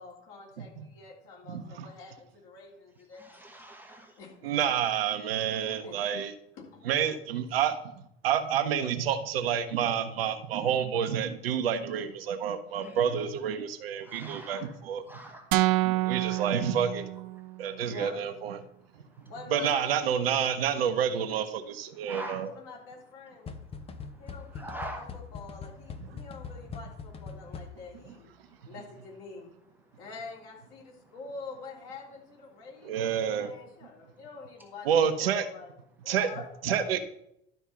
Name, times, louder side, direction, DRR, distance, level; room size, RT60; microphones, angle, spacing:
voice 1, 0.0-3.4 4.2-4.5 5.8-6.0 6.6-6.8 15.7-15.8 17.9-18.5 19.3-20.2 22.5-23.5 24.2-28.3 28.7-29.5 30.0-35.7 36.0-37.0, left 4 dB, 50° left, -2 dB, 3.6 m, -46 dB
voice 2, 1.5-1.9 4.4-6.3 6.9-7.8 8.2-15.0 15.8-17.1 17.6-18.6 19.5-22.5 32.8-33.5 34.9-35.5 36.1-36.3 36.6-37.0, right 8 dB, 60° right, 8 dB, 1.0 m, -28 dB
voice 3, 3.2-4.1 12.8-13.0 14.0-14.7 15.1-15.5 16.3-16.5 22.1-22.4 24.0-24.1 24.5-25.1, right 1 dB, 5° right, 2 dB, 0.9 m, -43 dB
sound 1, 15.5-17.6, right 19 dB, 40° right, 0.5 m, -27 dB
sound 2, 23.5-28.1, left 5 dB, 20° left, 0.6 m, -42 dB
11.5 x 4.6 x 5.6 m, 0.75 s
figure-of-eight pair, 80°, 33 cm